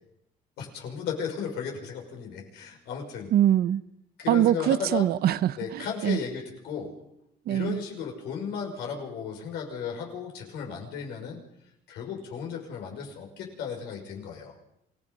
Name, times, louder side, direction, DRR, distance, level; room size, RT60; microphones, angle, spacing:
voice 1, 0.6-3.3 4.2-5.1 5.6-6.9 7.5-11.4 11.9-14.5, left 6 dB, 85° left, 1 dB, 6.0 m, -35 dB
voice 2, 3.3-3.8 4.3-6.2 7.5-7.8, right 11 dB, 65° right, 15 dB, 0.9 m, -23 dB
28.0 x 17.5 x 5.5 m, 0.81 s
cardioid pair, 110°, 17 cm